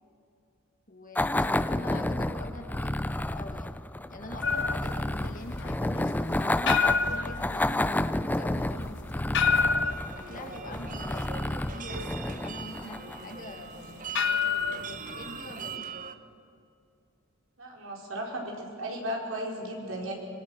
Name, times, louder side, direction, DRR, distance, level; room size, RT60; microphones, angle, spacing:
voice 1, 0.9-3.7 4.1-9.4 10.1-13.9 14.8-15.9, left 2 dB, 40° left, 4 dB, 2.2 m, -45 dB
sound 1, 1.1-13.3, left 1 dB, 10° left, 0.4 m, -30 dB
sound 2, 4.4-15.8, left 5 dB, 60° left, 1.0 m, -30 dB
sound 3, 9.8-16.1, right 6 dB, 40° right, 1.0 m, -41 dB
voice 2, 17.6-20.1, right 1 dB, 80° right, -1 dB, 4.7 m, -35 dB
25.0 x 23.5 x 6.4 m, 2.6 s
head